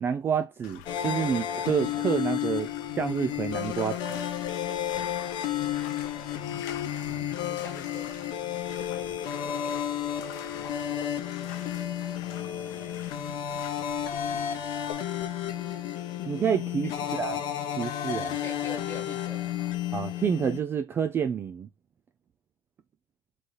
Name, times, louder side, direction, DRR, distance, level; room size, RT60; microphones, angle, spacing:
voice 1, 0.0-4.0 16.3-17.4 17.8-18.4 19.9-21.7, right 7 dB, 20° right, 0.3 m, -28 dB
Bathtub (filling or washing), 0.6-14.9, left 11 dB, 75° left, 0.8 m, -46 dB
sound 1, 0.9-20.6, left 10 dB, 45° left, 0.8 m, -32 dB
voice 2, 5.5-6.5 7.4-9.6 10.2-11.5 12.2-13.2 16.8-17.1 18.4-19.8, left 2 dB, 20° left, 1.2 m, -48 dB
3.8 x 3.2 x 3.9 m
cardioid pair, 145°, 10 cm